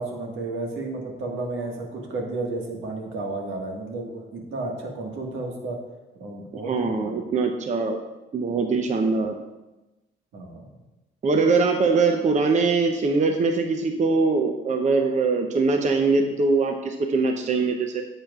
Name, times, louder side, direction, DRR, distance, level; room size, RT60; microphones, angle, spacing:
voice 1, 0.0-5.8 6.2-7.2 10.3-10.6, right 2 dB, 80° right, 0 dB, 1.7 m, -32 dB
voice 2, 6.7-8.0 8.3-9.3 11.2-18.0, right 4 dB, 35° right, 4 dB, 0.7 m, -22 dB
10.0 x 7.3 x 2.4 m, 1.0 s
cardioid pair, 90°, 20 cm